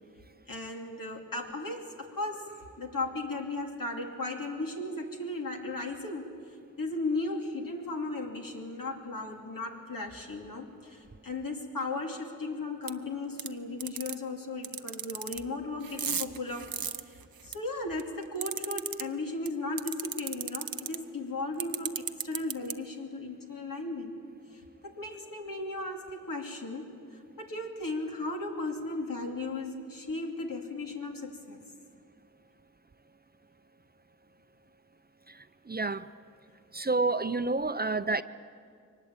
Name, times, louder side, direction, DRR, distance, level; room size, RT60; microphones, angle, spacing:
voice 1, 0.5-6.3 6.8-16.8 17.4-24.1 24.5-26.9 27.4-31.6, left 2 dB, 75° left, 2.8 m, -36 dB
sound 1, 12.9-13.0 13.4-13.5 13.8-14.2 14.6-15.4 15.8-17.5 18.0-19.0 19.5-19.6 19.8-21.0 21.6-22.7, right 8 dB, 90° right, 0.8 m, -33 dB
voice 2, 35.3-36.1 36.7-38.2, right 3 dB, 30° right, 0.6 m, -29 dB
23.5 x 19.5 x 8.9 m
wide cardioid pair, 60°, 34 cm